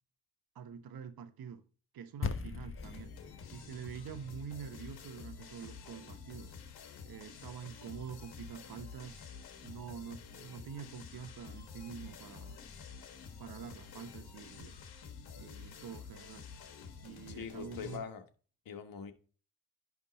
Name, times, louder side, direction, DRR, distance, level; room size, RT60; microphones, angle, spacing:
voice 1, 0.5-1.6 1.9-3.1 3.5-6.5 7.0-9.2 9.6-12.6 13.4-14.8 15.3-16.5 17.0-18.0, right 7 dB, 70° right, 1.0 m, -46 dB
sound 1, 2.2-6.7, left 5 dB, 35° left, 0.9 m, -43 dB
sound 2, 2.8-18.0, left 6 dB, 80° left, 1.3 m, -50 dB
voice 2, 17.3-18.2 18.6-19.1, left 7 dB, 65° left, 1.4 m, -43 dB
10.5 x 3.6 x 4.0 m
supercardioid pair, 55°, 38 cm